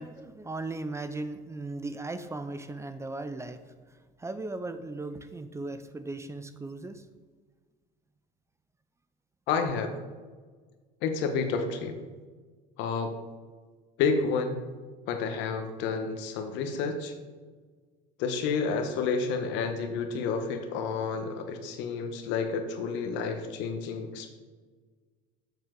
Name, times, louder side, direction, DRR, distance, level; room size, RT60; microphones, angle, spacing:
voice 1, 0.0-7.1, right 2 dB, 15° right, 10 dB, 0.5 m, -37 dB
voice 2, 9.5-9.9 11.0-12.0 12.8-13.2 14.0-14.6 15.1-17.1 18.2-24.3, left 5 dB, 75° left, 6 dB, 1.1 m, -30 dB
7.8 x 7.2 x 3.8 m, 1.4 s
supercardioid pair, 105°, 19 cm